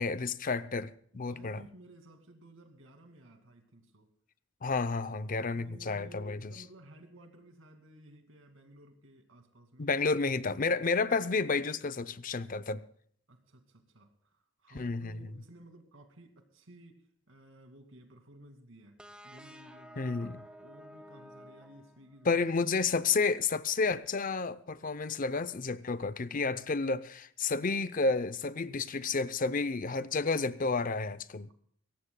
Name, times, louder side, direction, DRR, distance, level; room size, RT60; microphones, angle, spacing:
voice 1, 0.0-1.6 4.6-6.5 9.8-12.9 14.7-15.3 20.0-20.4 22.3-31.5, left 4 dB, 45° left, 0.6 m, -31 dB
voice 2, 1.1-4.1 5.3-10.0 10.3-10.8 13.3-20.3 20.6-23.0, right 1 dB, 90° right, 2.3 m, -56 dB
sound 1, 19.0-22.5, equal, 5° right, 1.0 m, -52 dB
22.5 x 17.5 x 2.3 m
head